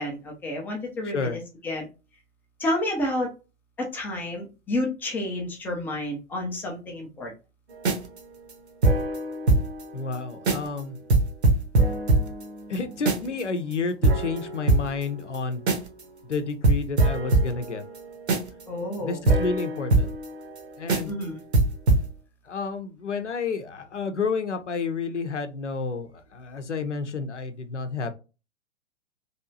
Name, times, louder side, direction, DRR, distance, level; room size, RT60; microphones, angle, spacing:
voice 1, 0.0-1.9 2.6-3.3 3.8-7.3 18.7-19.2 21.1-21.4, left 1 dB, 5° left, 0 dB, 0.4 m, -30 dB
voice 2, 1.0-1.4 9.9-11.0 12.7-15.6 16.2-17.8 18.7-20.1 20.8-21.1 22.4-28.1, left 4 dB, 80° left, 8 dB, 0.7 m, -30 dB
sound 1, 7.7-9.8 10.1-10.2 10.5-10.8 11.1-13.4 13.7-13.8 14.0-16.0 16.3-16.4 16.6-20.6 20.9-21.2 21.5-22.1, right 2 dB, 65° right, 1.0 m, -23 dB
3.3 x 2.7 x 2.6 m, 0.31 s
figure-of-eight pair, 110°, 35 cm